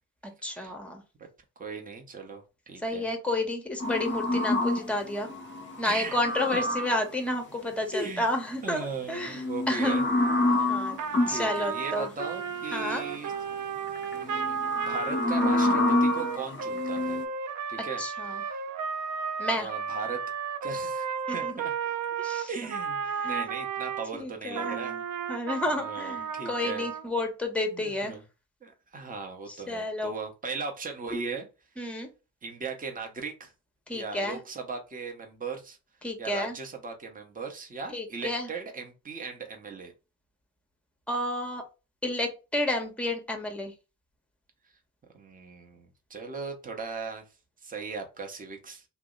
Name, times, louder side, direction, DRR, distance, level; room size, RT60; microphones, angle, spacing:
voice 1, 0.4-1.0 2.8-5.3 5.8-10.0 10.7-11.0 11.3-12.1 12.7-13.0 18.0-18.4 19.4-19.7 21.3-21.6 22.2-22.5 23.2-23.5 24.1-25.0 25.3-28.2 29.5-30.1 31.8-32.1 33.9-34.4 36.0-36.6 37.9-38.5 41.1-41.6 42.0-43.7, left 1 dB, 5° left, 4 dB, 0.9 m, -31 dB
voice 2, 1.6-3.1 5.8-6.3 6.5-6.6 7.9-8.3 8.6-10.0 10.4-10.8 11.3-13.3 14.1-17.2 17.7-18.6 19.5-20.2 20.6-21.7 22.5-25.0 25.7-26.9 27.7-28.2 28.6-31.5 32.4-33.5 33.9-35.8 36.2-39.9 45.1-47.2 47.6-48.8, right 4 dB, 20° right, 3 dB, 0.8 m, -38 dB
sound 1, 3.8-7.1 9.2-11.4 12.8-13.4 13.9-17.2, left 2 dB, 25° left, 0.8 m, -28 dB
Trumpet, 11.0-24.1 24.5-27.1, right 6 dB, 40° right, 0.5 m, -33 dB
2.6 x 2.1 x 3.8 m, 0.30 s
hypercardioid pair, 50°, 47 cm